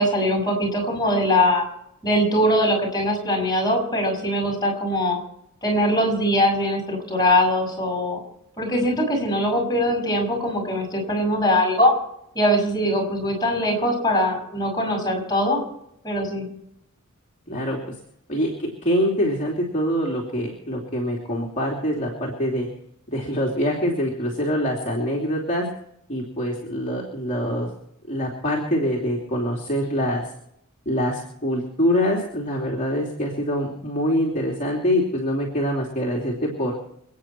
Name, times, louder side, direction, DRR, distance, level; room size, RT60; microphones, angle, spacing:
voice 1, 0.0-1.6 2.0-5.2 5.6-8.2 8.6-11.9 12.3-15.6 16.0-16.4, equal, 20° left, 1 dB, 6.5 m, -21 dB
voice 2, 17.5-18.0 18.3-22.7 23.1-25.7 26.1-27.7 28.1-30.2 30.8-36.7, equal, 35° left, -1 dB, 2.9 m, -24 dB
28.0 x 9.4 x 4.5 m, 0.76 s
head